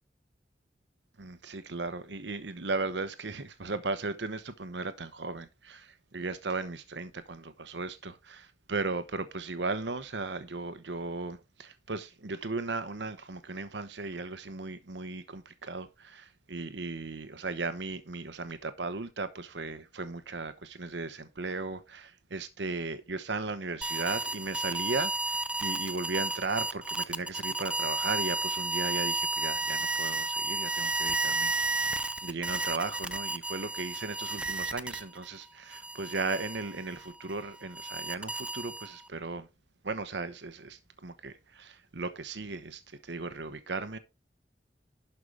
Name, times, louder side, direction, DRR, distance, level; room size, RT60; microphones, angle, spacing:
voice 1, 1.2-31.8 32.2-39.5 39.8-44.0, right 3 dB, 90° right, 1.0 m, -36 dB
sound 1, 23.8-35.3 35.7-39.1, right 2 dB, 5° right, 0.5 m, -32 dB
11.5 x 5.5 x 4.8 m
head